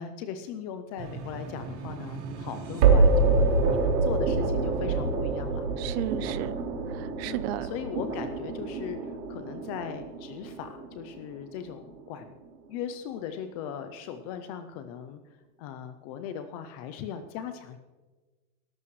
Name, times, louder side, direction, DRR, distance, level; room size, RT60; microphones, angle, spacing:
voice 1, 0.0-5.7 7.2-12.4 12.7-15.2 15.6-17.8, left 8 dB, 25° left, 9 dB, 0.4 m, -38 dB
sound 1, 1.0-12.0, right 3 dB, 90° right, 3.2 m, -27 dB
voice 2, 5.8-6.5 6.9-7.7, right 14 dB, 40° right, 16 dB, 0.6 m, -34 dB
17.5 x 14.0 x 3.1 m, 1.3 s
supercardioid pair, 155°, 49 cm